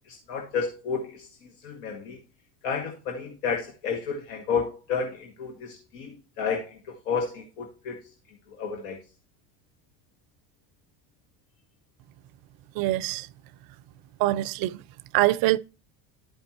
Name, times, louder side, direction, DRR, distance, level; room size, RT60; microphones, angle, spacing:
voice 1, 0.0-2.2 2.6-8.0 8.6-9.0, left 6 dB, 70° left, 1.4 m, -31 dB
voice 2, 12.8-13.3 14.2-14.7 15.1-15.6, right 17 dB, 50° right, 0.5 m, -23 dB
11.5 x 5.1 x 3.0 m
supercardioid pair, 90°, 46 cm